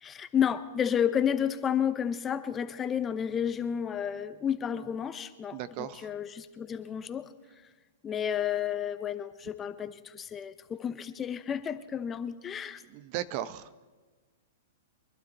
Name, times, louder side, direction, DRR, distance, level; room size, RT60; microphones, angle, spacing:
voice 1, 0.0-7.3 8.0-12.8, left 8 dB, 20° left, 11 dB, 0.8 m, -31 dB
voice 2, 5.5-6.1 12.9-13.7, right 12 dB, 45° right, 14 dB, 0.8 m, -36 dB
24.5 x 12.0 x 4.3 m, 1.3 s
hypercardioid pair, 130°, 0 cm